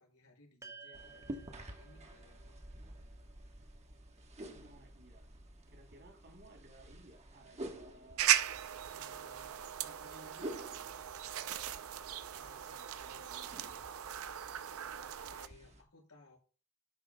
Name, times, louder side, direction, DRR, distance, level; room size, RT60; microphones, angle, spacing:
voice 1, 0.0-2.6 15.0-16.4, left 2 dB, 80° left, 0 dB, 6.0 m, -63 dB
sound 1, 0.6-5.1, right 4 dB, 15° right, 0.6 m, -57 dB
sound 2, 0.9-15.8, right 1 dB, 30° right, 1.2 m, -51 dB
voice 2, 4.5-5.2 5.7-8.2 8.9-11.1 12.3-13.7, right 1 dB, 50° right, 3 dB, 3.3 m, -59 dB
sound 3, 8.2-15.5, right 12 dB, 65° right, 0.6 m, -37 dB
12.5 x 10.5 x 2.3 m, 0.36 s
head